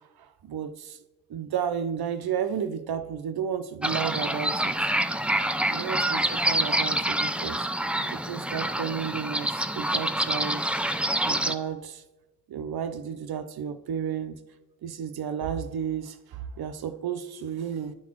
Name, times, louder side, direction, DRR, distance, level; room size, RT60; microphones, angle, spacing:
voice 1, 0.2-1.0 1.3-4.8 5.7-7.7 8.1-10.6 11.2-12.0 12.5-14.4 14.8-17.9, right 8 dB, 80° right, 9 dB, 0.5 m, -32 dB
sound 1, 3.8-11.5, right 1 dB, 5° right, 0.4 m, -27 dB
9.9 x 4.2 x 4.4 m, 1.1 s
cardioid pair, 45°, 37 cm